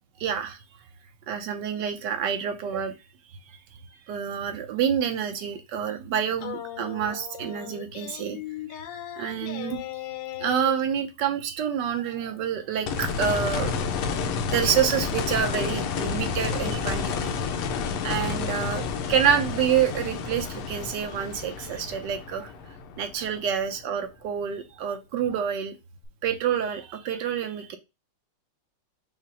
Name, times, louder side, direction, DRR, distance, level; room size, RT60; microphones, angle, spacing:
voice 1, 0.2-0.6 1.3-2.9 3.5-3.6 4.1-8.4 9.2-9.8 10.4-13.8 14.5-17.3 18.0-22.5 23.0-25.7 26.2-27.8, right 8 dB, 70° right, 1.0 m, -27 dB
sound 1, 6.4-10.8, left 12 dB, 70° left, 1.1 m, -37 dB
sound 2, 12.9-23.8 26.0-26.1, left 5 dB, 85° left, 1.6 m, -30 dB
5.6 x 2.0 x 4.7 m
omnidirectional pair, 2.4 m